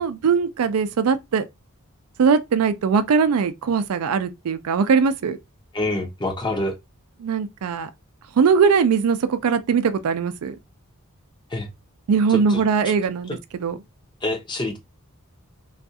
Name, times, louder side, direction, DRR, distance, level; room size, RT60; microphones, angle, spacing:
voice 1, 0.0-1.4 2.2-5.4 7.2-7.9 8.4-10.6 12.1-13.8, right 6 dB, 80° right, 0.4 m, -20 dB
voice 2, 5.7-6.7 11.5-11.7 12.3-12.6 13.3-13.4 14.2-14.8, left 2 dB, 20° left, 0.7 m, -26 dB
2.4 x 2.3 x 2.6 m
head